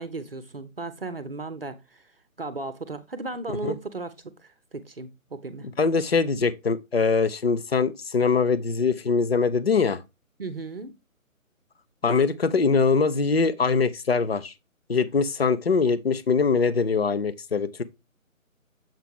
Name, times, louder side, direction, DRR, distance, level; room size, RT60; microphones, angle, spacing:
voice 1, 0.0-2.0 2.4-4.1 4.7-5.7 10.4-10.9, right 3 dB, 45° right, 0.7 m, -35 dB
voice 2, 5.8-10.0 12.0-14.5 14.9-17.8, left 5 dB, 45° left, 0.6 m, -23 dB
7.3 x 4.5 x 3.6 m
figure-of-eight pair, 150°, 42 cm